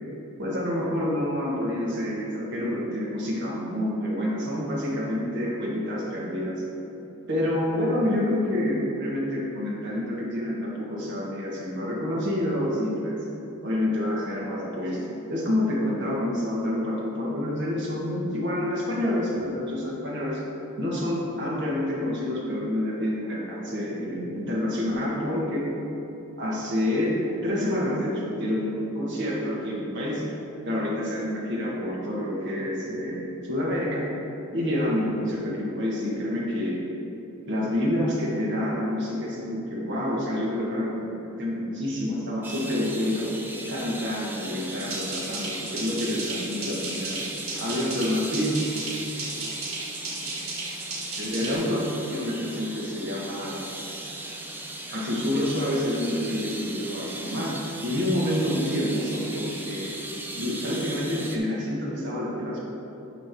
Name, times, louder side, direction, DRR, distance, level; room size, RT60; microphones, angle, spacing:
voice 1, 0.4-6.5 7.3-13.2 13.6-15.0 15.3-20.4 20.8-25.7 26.4-27.2 27.4-30.2 30.7-34.1 34.5-36.8 37.5-41.1 41.4-43.3 43.7-47.2 47.6-48.6 51.2-53.6 54.9-57.5 57.8-59.9 60.3-62.6, left 1 dB, 60° right, -4 dB, 1.7 m, -28 dB
sound 1, 42.4-61.4, right 1 dB, 10° right, 0.6 m, -38 dB
sound 2, 44.7-51.5, right 3 dB, 80° right, 1.7 m, -35 dB
9.8 x 3.4 x 6.1 m, 2.9 s
head